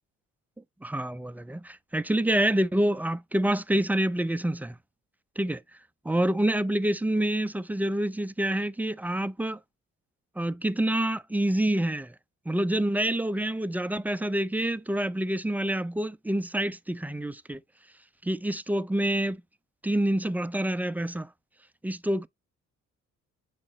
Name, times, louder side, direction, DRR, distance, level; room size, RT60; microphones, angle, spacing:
voice 1, 0.8-4.8 5.4-5.6 6.0-9.6 10.4-12.1 12.5-17.6 18.2-19.4 19.8-21.3 21.8-22.3, right 1 dB, 5° right, 0.4 m, -27 dB
7.1 x 4.9 x 3.0 m
cardioid pair, 90°, 30 cm